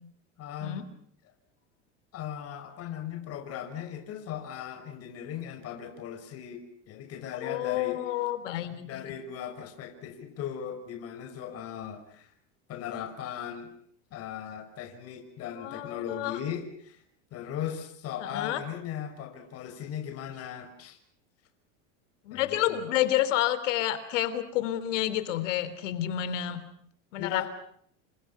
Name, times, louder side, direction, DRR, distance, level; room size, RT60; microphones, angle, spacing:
voice 1, 0.4-0.8 2.1-8.0 8.7-12.3 12.7-13.7 14.1-17.0 17.3-21.0 22.3-22.9 27.2-27.5, left 9 dB, 40° left, 6 dB, 5.9 m, -38 dB
voice 2, 7.4-8.9 15.6-16.4 18.2-18.6 22.3-26.6 27.1-27.5, left 13 dB, 85° left, 13 dB, 3.6 m, -29 dB
29.0 x 26.0 x 5.7 m, 0.65 s
supercardioid pair, 145°, 36 cm